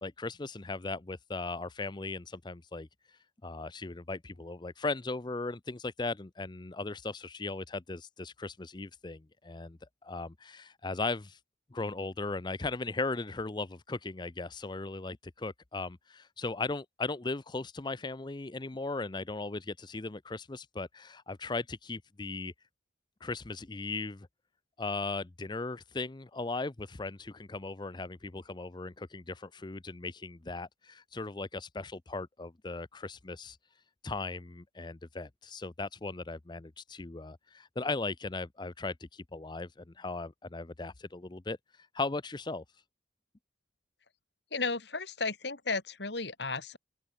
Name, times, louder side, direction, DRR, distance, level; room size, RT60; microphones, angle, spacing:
voice 1, 0.0-11.4 11.7-22.5 23.2-24.3 24.8-33.6 34.0-42.6, left 3 dB, 25° left, 0.6 m, -38 dB
voice 2, 44.5-46.8, left 4 dB, 60° left, 2.7 m, -34 dB
open air
head